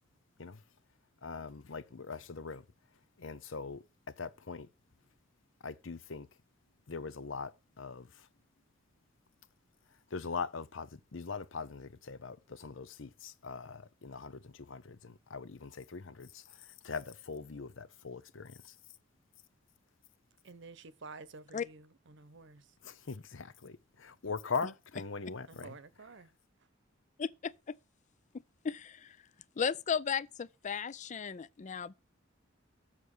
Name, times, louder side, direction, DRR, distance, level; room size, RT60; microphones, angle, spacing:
voice 1, 1.2-2.6 3.2-4.7 5.6-6.3 6.9-8.3 10.1-18.8 22.8-25.8, left 5 dB, 70° left, 0.8 m, -41 dB
voice 2, 20.4-22.8 25.5-26.3, right 3 dB, 65° right, 0.9 m, -51 dB
voice 3, 27.2-27.7 28.6-29.2 29.6-31.9, left 6 dB, 40° left, 0.4 m, -35 dB
7.4 x 6.3 x 6.5 m
head